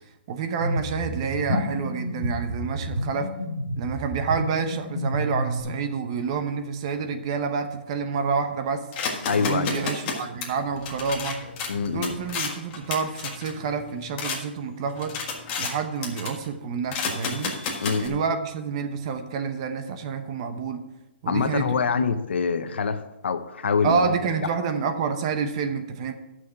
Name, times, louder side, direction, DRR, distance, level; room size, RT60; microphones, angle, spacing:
voice 1, 0.3-3.3 3.8-8.8 9.4-11.4 11.9-15.1 15.6-17.5 18.0-20.8 21.2-22.0 23.8-26.1, right 5 dB, 30° right, 8 dB, 0.9 m, -28 dB
sound 1, 0.6-5.6, equal, 60° right, 2.9 m, -30 dB
sound 2, 8.9-14.4 14.8-15.8 16.0-16.5 16.9-18.1, left 5 dB, 25° left, 1.6 m, -32 dB
voice 2, 9.3-9.9 11.7-12.1 17.8-18.2 21.3-24.2, left 5 dB, 80° left, 10 dB, 1.0 m, -25 dB
11.5 x 6.4 x 5.8 m, 0.97 s
hypercardioid pair, 170°, 6 cm